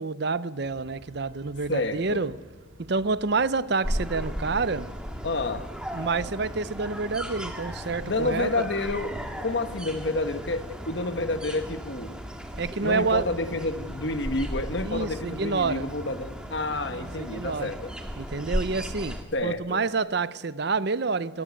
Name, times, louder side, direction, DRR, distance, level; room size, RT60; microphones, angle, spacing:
voice 1, 0.0-2.4 2.8-4.9 5.9-8.6 12.5-13.3 14.8-15.9 16.8-17.7 18.2-21.4, right 4 dB, 55° right, 0.7 m, -28 dB
sound 1, 0.6-19.2, right 1 dB, 80° right, 2.3 m, -51 dB
voice 2, 1.7-2.2 5.2-5.7 8.0-9.1 9.4-12.2 12.8-17.8 19.3-19.8, left 2 dB, 60° left, 1.4 m, -29 dB
sound 2, 3.8-19.2, equal, 5° right, 2.0 m, -36 dB
27.5 x 19.0 x 8.5 m
head